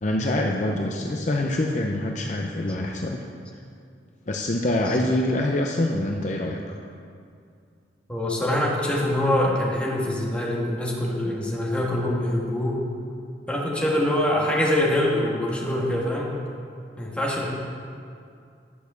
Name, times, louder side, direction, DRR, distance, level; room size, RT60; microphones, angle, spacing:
voice 1, 0.0-3.2 4.3-6.7, left 1 dB, 40° left, 1 dB, 0.7 m, -25 dB
voice 2, 8.1-12.8 13.5-16.3 17.0-17.5, left 1 dB, 5° left, -4 dB, 1.7 m, -24 dB
10.5 x 6.5 x 6.8 m, 2.3 s
head